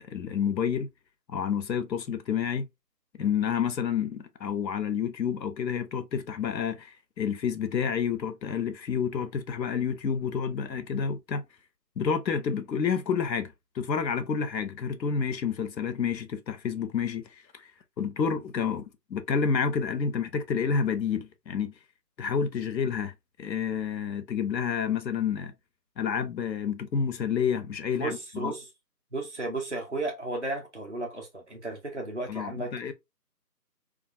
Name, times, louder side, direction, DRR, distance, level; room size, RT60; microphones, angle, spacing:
voice 1, 0.1-0.9 1.3-2.7 3.2-11.4 12.0-17.7 18.0-18.8 19.1-21.7 22.2-23.1 23.4-25.5 26.0-28.5 32.3-32.9, left 6 dB, 85° left, 0.6 m, -29 dB
voice 2, 28.0-28.7 29.1-32.7, right 2 dB, 45° right, 0.5 m, -34 dB
2.4 x 2.3 x 2.5 m
figure-of-eight pair, 170°, 50 cm